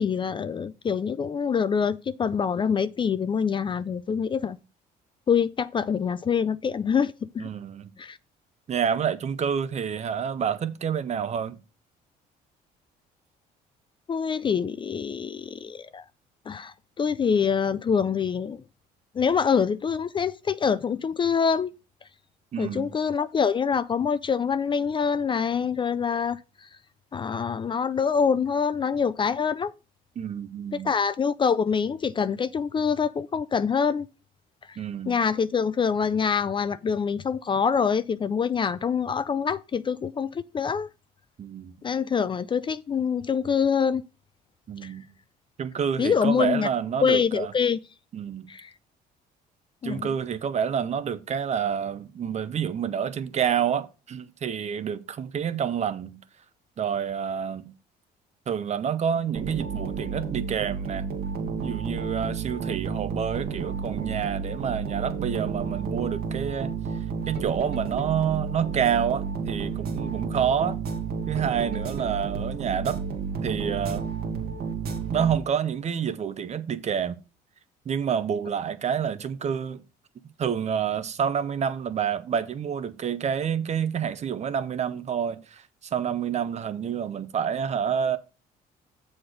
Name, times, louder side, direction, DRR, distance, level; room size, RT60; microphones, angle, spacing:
voice 1, 0.0-4.6 5.3-7.5 8.0-8.2 14.1-16.0 16.5-18.6 19.1-21.7 22.6-26.7 27.1-29.7 30.8-34.1 34.7-34.8 35.1-40.9 41.8-44.0 44.8-44.9 46.0-46.7 47.0-47.8 48.5-48.7 49.8-50.1, left 6 dB, 30° left, 0.4 m, -25 dB
voice 2, 7.4-7.9 8.7-11.6 22.5-22.9 30.2-30.9 34.8-35.2 41.4-41.8 44.7-45.0 45.6-47.5 48.1-48.5 49.8-56.2 56.8-57.7 58.5-61.1 61.6-66.7 67.3-70.8 71.3-73.0 73.4-74.0 75.1-77.2 77.8-79.8 80.4-88.2, right 8 dB, 40° right, 0.9 m, -28 dB
sound 1, 59.3-75.8, right 5 dB, 65° right, 1.7 m, -31 dB
7.5 x 4.3 x 6.5 m
cardioid pair, 110°, 17 cm